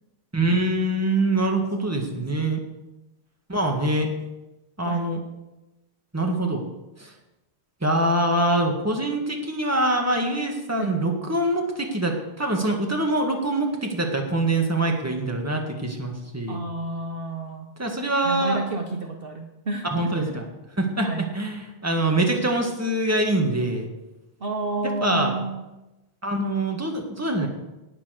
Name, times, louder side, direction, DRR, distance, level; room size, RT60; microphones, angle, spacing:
voice 1, 0.3-2.6 3.5-4.1 4.8-5.2 6.1-6.6 7.0-7.1 7.8-16.6 17.8-18.6 19.9-20.4 20.8-21.1 21.3-23.9 25.0-25.4 26.2-27.5, right 1 dB, 10° right, 2 dB, 1.9 m, -24 dB
voice 2, 1.8-2.5 4.8-5.2 10.8-11.0 16.5-17.7 18.2-20.4 21.0-21.3 24.4-25.6, right 2 dB, 50° right, 3 dB, 1.2 m, -31 dB
18.5 x 6.9 x 6.6 m, 1.0 s
omnidirectional pair, 1.3 m